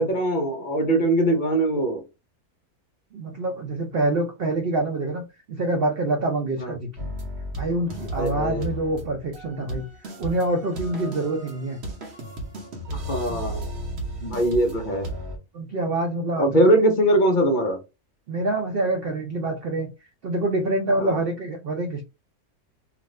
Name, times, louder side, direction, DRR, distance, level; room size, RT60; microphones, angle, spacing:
voice 1, 0.0-2.0 6.6-6.8 8.1-8.7 12.9-13.6 14.2-15.1 16.4-17.8 21.0-21.2, right 1 dB, 50° left, 3 dB, 0.6 m, -22 dB
voice 2, 3.1-5.2 5.5-7.1 7.6-9.9 10.2-11.8 15.5-16.6 18.3-19.9 20.2-22.0, right 2 dB, 70° right, 2 dB, 0.5 m, -26 dB
sound 1, 7.0-15.4, equal, 55° right, 0.9 m, -34 dB
2.5 x 2.5 x 3.1 m, 0.27 s
omnidirectional pair, 1.6 m